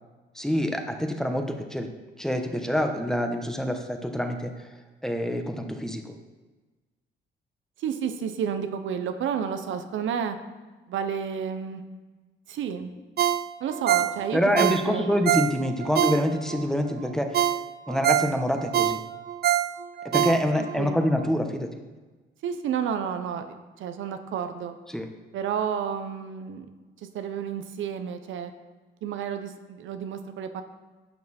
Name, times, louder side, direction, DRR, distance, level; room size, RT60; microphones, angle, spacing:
voice 1, 0.3-1.9 2.2-4.6 5.0-6.1 14.3-17.4 17.9-19.0 20.0-21.7 24.9-25.1, equal, 5° left, 5 dB, 1.1 m, -26 dB
voice 2, 7.8-10.4 10.9-11.8 12.5-12.9 13.6-15.2 20.8-21.0 22.4-24.7 25.3-26.7 27.0-28.5 29.0-30.6, right 7 dB, 75° right, 8 dB, 0.8 m, -31 dB
Ringtone, 13.2-16.6 17.0-17.1 17.3-20.8 21.2-21.3, right 11 dB, 55° right, 0.4 m, -25 dB
11.0 x 6.6 x 4.3 m, 1.3 s
cardioid pair, 90°, 20 cm